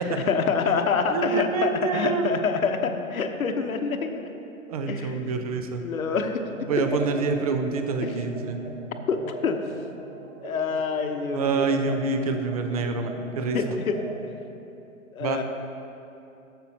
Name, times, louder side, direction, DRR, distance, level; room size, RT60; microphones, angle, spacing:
voice 1, 0.0-4.3 4.9-5.3 5.8-6.4 8.0-8.1 9.1-9.6 10.4-11.6 13.5-13.9 15.1-15.4, left 5 dB, 75° left, 6 dB, 0.9 m, -26 dB
voice 2, 1.1-2.3 4.7-5.8 6.7-8.6 11.3-13.8 15.2-15.4, right 4 dB, 30° right, 6 dB, 0.4 m, -26 dB
sound 1, 6.5-14.2, right 2 dB, 85° right, 1.5 m, -40 dB
13.5 x 7.2 x 2.8 m, 2.8 s
hypercardioid pair, 130°, 42 cm